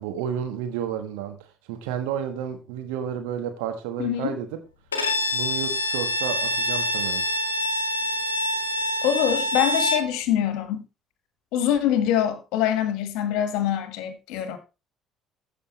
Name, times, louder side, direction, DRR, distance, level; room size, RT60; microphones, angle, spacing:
voice 1, 0.0-1.4 1.7-4.6 5.3-7.2, right 9 dB, 70° right, 1.4 m, -31 dB
voice 2, 4.0-4.3 9.0-10.8 11.5-14.6, left 10 dB, 65° left, 1.5 m, -24 dB
Bowed string instrument, 4.9-10.1, left 1 dB, 85° left, 1.1 m, -26 dB
14.5 x 6.2 x 3.1 m
figure-of-eight pair, 50°, 0 cm